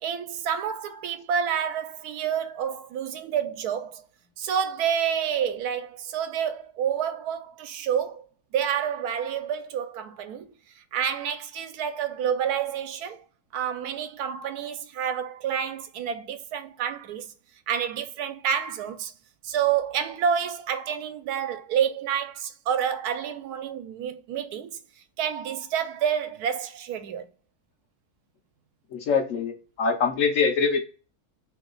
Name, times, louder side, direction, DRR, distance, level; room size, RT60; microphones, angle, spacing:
voice 1, 0.0-4.0 4.4-8.2 8.5-10.5 10.8-13.2 13.5-17.3 17.7-19.1 19.4-24.8 25.2-27.3, right 8 dB, 85° right, 1.1 m, -29 dB
voice 2, 28.9-30.8, left 5 dB, 65° left, 1.0 m, -24 dB
3.0 x 2.9 x 3.8 m
omnidirectional pair, 1.6 m